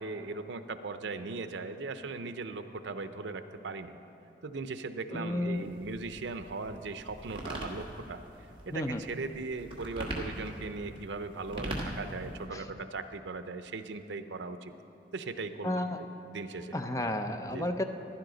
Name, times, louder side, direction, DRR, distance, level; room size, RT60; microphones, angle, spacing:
voice 1, 0.0-3.9 4.4-8.2 8.7-14.7 15.1-16.8 17.5-17.7, right 3 dB, 80° right, 10 dB, 0.6 m, -39 dB
voice 2, 5.1-5.7 8.7-9.0 12.5-12.6 15.6-16.0 16.7-17.8, left 1 dB, 20° left, 7 dB, 0.5 m, -32 dB
sound 1, 5.5-12.5, right 1 dB, 30° right, 1.5 m, -41 dB
15.0 x 11.5 x 3.9 m, 2.9 s
head